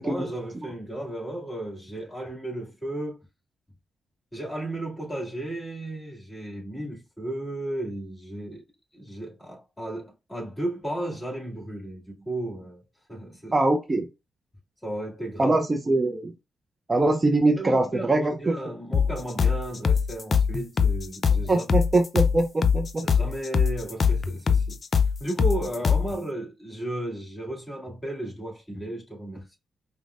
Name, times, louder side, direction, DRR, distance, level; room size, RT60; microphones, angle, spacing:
voice 1, 0.0-3.3 4.3-8.6 8.9-12.8 13.1-13.6 14.8-15.6 17.5-21.8 23.0-24.8 25.2-29.6, right 1 dB, 15° left, 2.1 m, -34 dB
voice 2, 13.5-14.1 15.4-16.3 16.9-18.6 21.5-23.1, right 2 dB, 30° right, 0.5 m, -23 dB
sound 1, 18.9-26.1, left 6 dB, 50° left, 0.4 m, -23 dB
5.0 x 2.1 x 2.4 m
cardioid pair, 60°, 0 cm